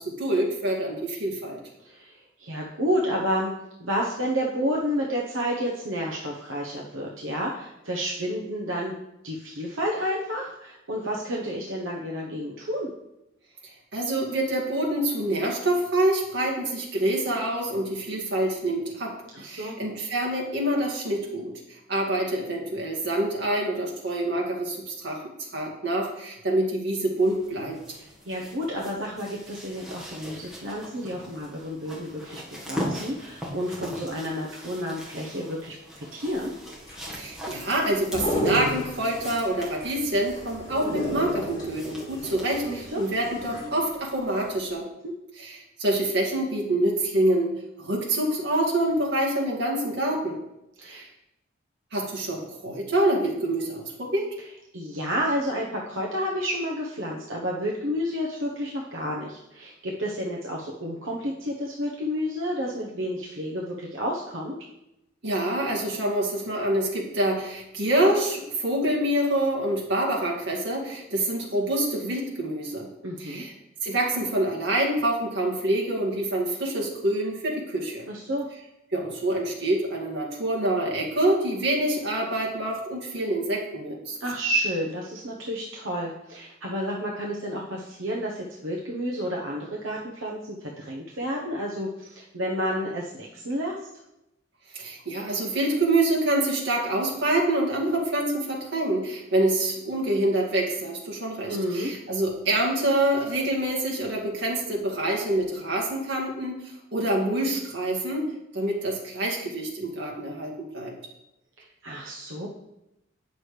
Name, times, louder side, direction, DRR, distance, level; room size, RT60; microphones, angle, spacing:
voice 1, 0.0-1.6 13.9-27.8 37.1-44.9 45.4-50.4 50.8-51.1 51.9-54.3 65.2-72.9 73.2-73.5 73.8-78.1 78.9-84.2 94.7-108.2 108.5-110.9, right 1 dB, 55° right, -3 dB, 2.1 m, -26 dB
voice 2, 1.8-3.5 3.8-9.0 9.2-12.9 19.3-19.8 27.9-36.5 42.6-43.0 45.0-45.1 50.8-51.1 54.7-64.6 73.0-73.4 78.1-78.5 84.2-93.9 101.5-101.9 111.6-112.5, equal, 80° right, -3 dB, 1.0 m, -30 dB
sound 1, 27.2-43.6 44.6-44.7, equal, 5° right, 1.4 m, -41 dB
sound 2, 36.3-44.2 44.5-44.6, equal, 25° left, 3.2 m, -33 dB
9.6 x 6.2 x 3.3 m, 0.88 s
head